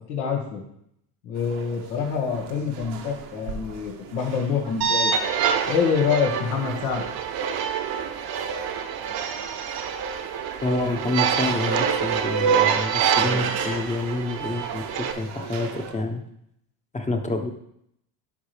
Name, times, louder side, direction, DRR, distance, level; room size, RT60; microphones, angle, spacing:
voice 1, 0.1-0.6 1.2-5.1 5.7-7.0, left 6 dB, 75° left, 2 dB, 2.0 m, -26 dB
sound 1, 1.3-15.9, right 6 dB, 80° right, 1.2 m, -40 dB
sound 2, 4.8-15.1, right 7 dB, 50° right, 1.0 m, -26 dB
voice 2, 10.6-16.2 16.9-17.5, left 2 dB, 15° left, 4 dB, 1.1 m, -28 dB
11.5 x 4.7 x 3.4 m, 0.74 s
supercardioid pair, 90°, 46 cm